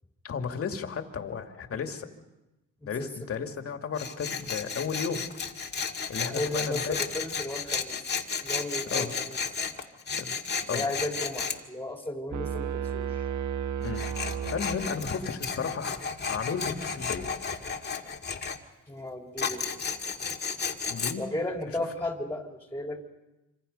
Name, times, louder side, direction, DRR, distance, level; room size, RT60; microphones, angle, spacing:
voice 1, 0.2-2.1 2.8-5.2 6.1-7.0 8.9-9.1 10.2-10.3 10.7-10.9 13.8-14.0 14.5-16.0 16.3-17.3 20.9-21.2 21.7-21.8, left 6 dB, 50° left, 5 dB, 2.4 m, -33 dB
Tools, 4.0-11.6 13.8-18.6 19.4-21.1, left 5 dB, 35° left, 2.0 m, -33 dB
voice 2, 6.3-9.4 10.7-13.3 18.9-19.7 21.2-23.1, left 1 dB, 10° left, 2 dB, 3.6 m, -35 dB
sound 1, 12.3-15.3, right 8 dB, 75° right, 1.2 m, -33 dB
26.0 x 26.0 x 5.5 m, 1.0 s
cardioid pair, 90°, 30 cm